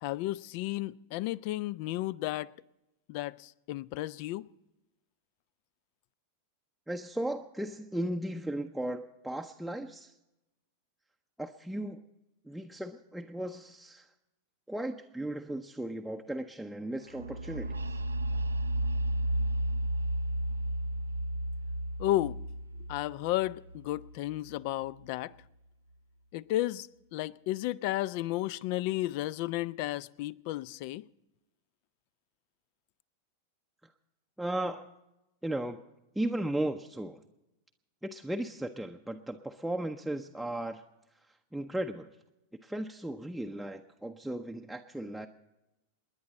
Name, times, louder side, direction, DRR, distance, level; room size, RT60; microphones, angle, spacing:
voice 1, 0.0-2.5 3.1-4.4 22.0-22.4 22.9-25.3 26.3-31.0, left 16 dB, 45° left, 0.4 m, -33 dB
voice 2, 6.9-10.1 11.4-12.0 12.5-14.1 14.7-17.8 34.4-34.9 35.4-35.8 36.2-37.2 38.0-40.8 41.5-42.1 42.6-45.3, right 1 dB, ahead, 0.6 m, -36 dB
sound 1, 17.1-24.9, right 1 dB, 75° right, 0.5 m, -33 dB
28.5 x 10.5 x 4.1 m
figure-of-eight pair, 90°, 0 cm